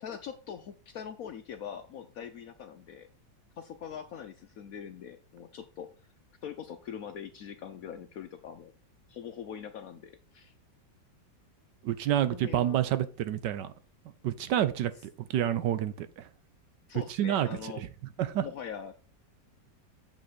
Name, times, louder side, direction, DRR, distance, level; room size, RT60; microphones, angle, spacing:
voice 1, 0.0-3.1 3.6-5.9 6.4-8.7 9.1-10.5 12.2-12.8 16.9-17.8 18.3-18.9, left 8 dB, 70° left, 0.9 m, -42 dB
voice 2, 11.8-13.7 14.2-16.3 17.2-17.7 18.2-18.5, right 11 dB, 75° right, 1.2 m, -29 dB
7.2 x 5.4 x 4.0 m
omnidirectional pair, 2.0 m